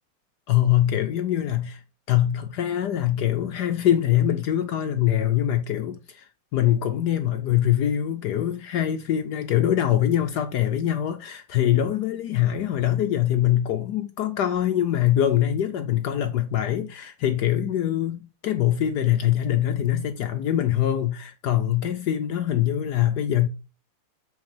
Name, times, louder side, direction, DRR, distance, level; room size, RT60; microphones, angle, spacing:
voice 1, 0.5-1.8 2.1-23.5, left 11 dB, 75° left, 0.9 m, -23 dB
8.4 x 4.3 x 4.3 m
omnidirectional pair, 2.4 m